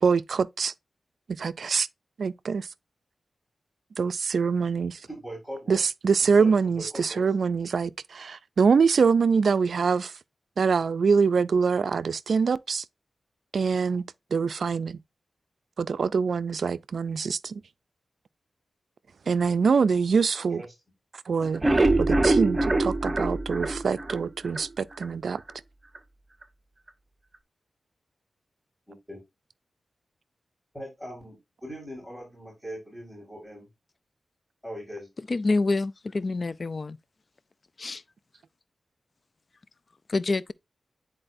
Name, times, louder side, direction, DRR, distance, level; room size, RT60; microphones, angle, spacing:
voice 1, 0.0-0.7 1.3-1.9 2.2-2.7 4.0-5.0 5.7-10.1 10.6-12.8 13.5-14.0 14.3-15.0 15.8-17.6 19.3-20.6 21.3-21.6 22.0-25.4, right 5 dB, 70° right, 0.4 m, -24 dB
voice 2, 5.1-5.8 6.2-7.2 20.6-20.7 28.9-29.2 30.7-33.7 34.6-35.1, equal, 5° left, 4.5 m, -40 dB
sound 1, 21.4-24.6 25.0-25.1 25.5-25.6 25.9-26.0, right 2 dB, 25° right, 0.9 m, -24 dB
voice 3, 35.3-37.0 37.8-38.0 40.1-40.5, left 3 dB, 45° left, 0.4 m, -27 dB
9.9 x 4.2 x 2.6 m
wide cardioid pair, 75°, 0 cm